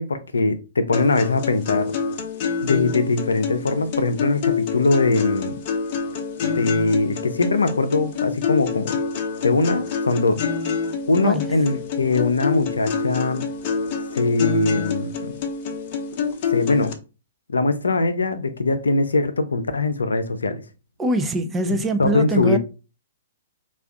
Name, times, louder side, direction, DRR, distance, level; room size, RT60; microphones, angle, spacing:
voice 1, 0.0-1.9 2.6-5.6 6.4-9.0 9.4-10.4 11.1-13.5 14.1-15.3 16.5-16.9 17.5-20.6 22.0-22.6, left 3 dB, 80° left, 0.5 m, -21 dB
sound 1, 0.9-16.9, left 5 dB, 45° left, 0.7 m, -27 dB
voice 2, 21.0-22.6, right 1 dB, 15° right, 0.5 m, -23 dB
3.4 x 2.4 x 3.4 m
hypercardioid pair, 120°, 0 cm